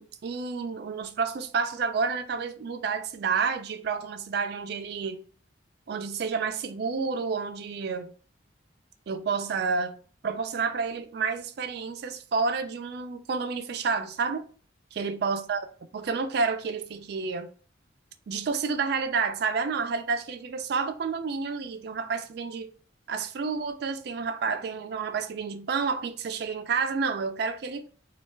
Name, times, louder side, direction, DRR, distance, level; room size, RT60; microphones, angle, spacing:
voice 1, 0.0-5.2 5.9-8.1 9.1-10.0 10.2-14.4 14.9-15.6 15.9-17.5 18.3-22.7 23.1-27.8, right 5 dB, 55° right, 0.3 m, -30 dB
2.2 x 2.1 x 3.1 m
head